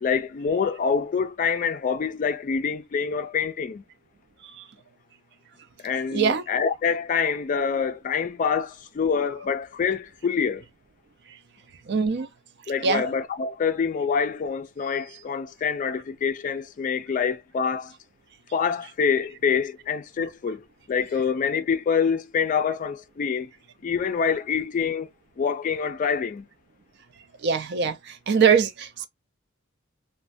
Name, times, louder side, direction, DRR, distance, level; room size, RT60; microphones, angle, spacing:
voice 1, 0.0-3.8 5.8-10.6 12.7-17.9 18.5-20.6 20.9-23.5 23.8-25.1 25.4-26.4, left 6 dB, 40° left, 0.3 m, -26 dB
voice 2, 6.1-6.4 11.3-11.4 11.9-12.3 12.8-13.1 27.4-29.1, right 6 dB, 55° right, 0.5 m, -23 dB
3.1 x 2.1 x 2.5 m
head